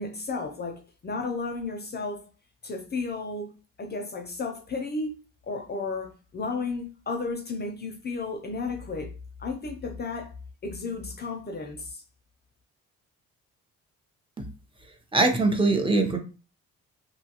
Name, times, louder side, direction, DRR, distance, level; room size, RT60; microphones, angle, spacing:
voice 1, 0.0-2.3 2.6-3.5 3.8-5.2 5.4-10.3 10.6-12.0, left 3 dB, 35° left, 0.5 m, -33 dB
voice 2, 15.1-16.2, right 3 dB, 15° right, 0.7 m, -22 dB
2.7 x 2.3 x 2.8 m
cardioid pair, 90°, 30 cm